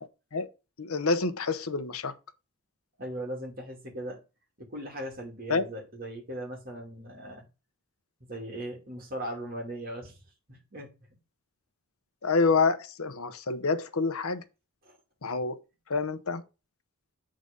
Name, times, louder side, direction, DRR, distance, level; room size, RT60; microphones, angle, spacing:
voice 1, 0.8-2.1 5.5-5.7 12.2-14.4 15.2-15.6 15.9-16.4, left 4 dB, 90° left, 0.9 m, -27 dB
voice 2, 3.0-4.2 4.6-7.4 8.3-10.2 10.5-10.9, right 1 dB, 45° right, 2.7 m, -38 dB
8.0 x 3.9 x 5.2 m
head